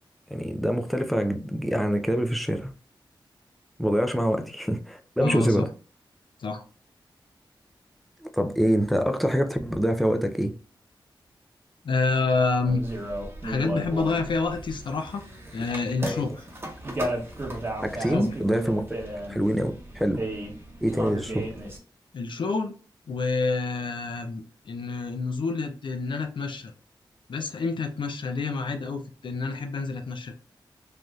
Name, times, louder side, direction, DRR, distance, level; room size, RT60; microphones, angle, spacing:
voice 1, 0.3-2.7 3.8-5.7 8.3-10.5 16.0-16.3 17.8-18.9 19.3-20.2 20.8-21.5, equal, ahead, 0.4 m, -25 dB
voice 2, 5.2-5.7 6.4-6.6 11.8-12.8 13.4-15.2 15.5-16.4 18.1-18.3 22.1-22.8 23.1-26.7 27.3-30.3, left 4 dB, 70° left, 0.5 m, -28 dB
sound 1, 12.6-21.8, right 1 dB, 30° right, 0.9 m, -34 dB
3.4 x 2.6 x 2.3 m
wide cardioid pair, 95°, 9 cm